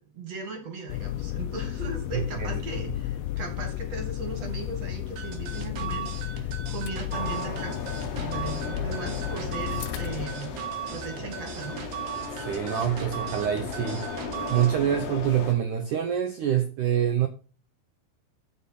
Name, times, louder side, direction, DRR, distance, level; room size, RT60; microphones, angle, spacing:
voice 1, 0.1-7.8 8.2-10.5 10.9-11.8, right 4 dB, 45° right, 2.9 m, -38 dB
sound 1, 0.9-10.3, left 14 dB, 85° left, 2.1 m, -33 dB
voice 2, 2.1-2.6 12.3-14.1 14.5-17.3, right 10 dB, 75° right, 1.8 m, -26 dB
sound 2, 5.2-14.7, right 9 dB, 60° right, 2.5 m, -38 dB
sound 3, 7.1-15.5, left 4 dB, 60° left, 3.2 m, -36 dB
14.5 x 5.4 x 4.2 m
omnidirectional pair, 4.9 m